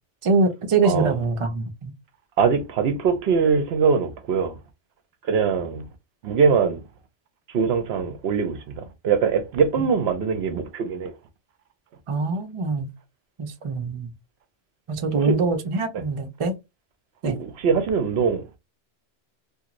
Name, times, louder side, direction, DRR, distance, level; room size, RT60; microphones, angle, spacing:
voice 1, 0.2-1.9 12.1-12.9 13.4-14.1 14.9-16.5 17.2-17.4, right 3 dB, 50° right, 0.4 m, -24 dB
voice 2, 2.4-4.6 5.2-5.9 6.2-6.8 7.5-11.1 15.1-15.3 17.2-18.4, right 6 dB, 65° right, 0.7 m, -22 dB
2.8 x 2.6 x 2.5 m
omnidirectional pair, 1.2 m